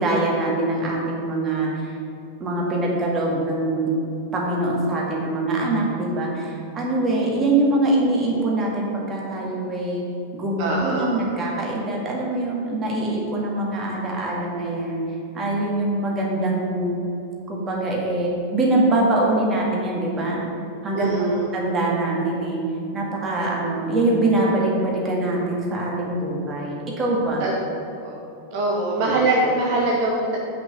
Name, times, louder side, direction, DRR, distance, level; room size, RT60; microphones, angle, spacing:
voice 1, 0.0-1.9 2.4-3.9 4.3-10.0 10.3-15.0 15.3-17.1 17.5-20.5 20.8-22.6 22.9-27.4, right 2 dB, 25° right, -3 dB, 2.0 m, -23 dB
voice 2, 10.6-11.2 20.9-21.5 27.4-27.5 28.0-28.2 28.5-30.4, right 2 dB, 45° right, -2 dB, 1.0 m, -23 dB
5.9 x 5.6 x 7.0 m, 2.7 s
figure-of-eight pair, 90°, 0 cm